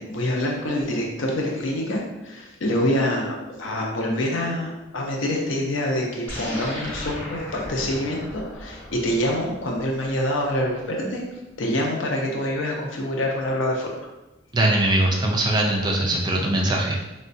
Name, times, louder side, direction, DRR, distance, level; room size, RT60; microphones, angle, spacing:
voice 1, 0.0-11.2 11.6-13.9, left 1 dB, 70° left, 0 dB, 0.6 m, -26 dB
sound 1, 6.3-10.9, left 1 dB, 10° left, 0.9 m, -37 dB
voice 2, 14.5-17.0, right 1 dB, 20° right, -1 dB, 0.3 m, -21 dB
3.6 x 2.1 x 2.5 m, 1.0 s
head